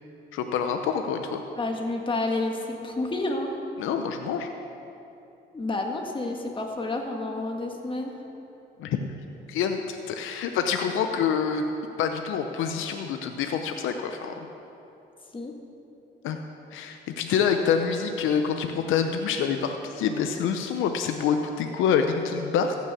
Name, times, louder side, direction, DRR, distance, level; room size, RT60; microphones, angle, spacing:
voice 1, 0.3-1.4 3.8-4.5 8.8-9.0 9.5-11.6 12.0-14.3 16.2-16.4 16.7-22.8, left 7 dB, 85° left, 6 dB, 0.7 m, -26 dB
voice 2, 1.6-3.5 5.5-8.2 15.3-15.5, left 2 dB, 25° left, 2 dB, 1.5 m, -30 dB
15.0 x 6.3 x 6.8 m, 2.9 s
cardioid pair, 90°, 20 cm